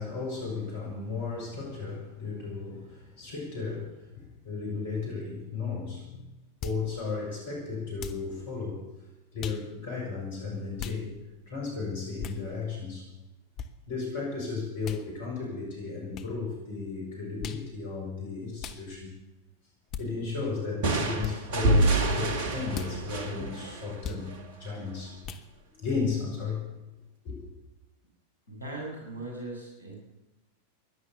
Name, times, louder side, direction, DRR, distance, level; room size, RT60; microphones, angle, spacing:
voice 1, 0.0-6.3 6.6-8.8 9.3-11.2 11.5-13.1 13.9-19.1 20.0-24.3 24.6-25.2 25.7-26.6 27.2-27.5, left 4 dB, 55° left, -1 dB, 6.9 m, -34 dB
sound 1, 6.6-6.8 8.0-8.3 9.4-9.6 10.8-11.0 12.2-12.4 13.6-13.7 14.8-15.0 16.1-16.3 17.4-17.7 18.6-18.8 19.9-20.1 21.2-21.4 22.7-22.9 24.0-24.2 25.2-25.5, left 7 dB, 35° left, 1.4 m, -38 dB
sound 2, 20.8-24.5, right 2 dB, 50° right, 2.1 m, -27 dB
voice 2, 28.5-30.0, right 2 dB, 85° left, -1 dB, 7.5 m, -39 dB
17.0 x 11.5 x 6.9 m, 1.0 s
figure-of-eight pair, 90°, 0 cm